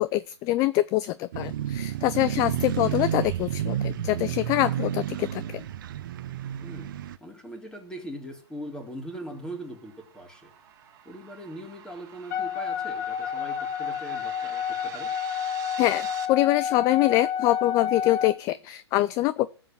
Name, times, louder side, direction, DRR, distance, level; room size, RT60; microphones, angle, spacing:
voice 1, 0.0-5.6 15.8-19.5, left 16 dB, 25° left, 16 dB, 0.6 m, -25 dB
sound 1, 1.3-7.2, right 11 dB, 50° right, 1.0 m, -31 dB
voice 2, 6.6-6.9 7.2-10.5 11.1-15.1, right 1 dB, 5° left, 3 dB, 3.8 m, -40 dB
sound 2, 8.5-16.2, right 10 dB, 25° right, 2.5 m, -47 dB
Wind instrument woodwind instrument, 12.3-18.4, left 8 dB, 40° left, 4.4 m, -30 dB
14.5 x 8.0 x 7.5 m, 0.38 s
hypercardioid pair, 135°, 14 cm